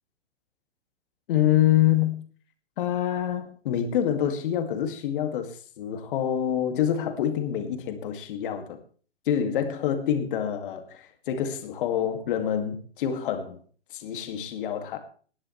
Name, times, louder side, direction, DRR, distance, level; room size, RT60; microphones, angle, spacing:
voice 1, 1.3-2.2 2.8-8.8 9.3-13.6 13.9-15.0, left 10 dB, 45° left, 2.3 m, -26 dB
20.0 x 11.0 x 3.3 m
figure-of-eight pair, 120°, 35 cm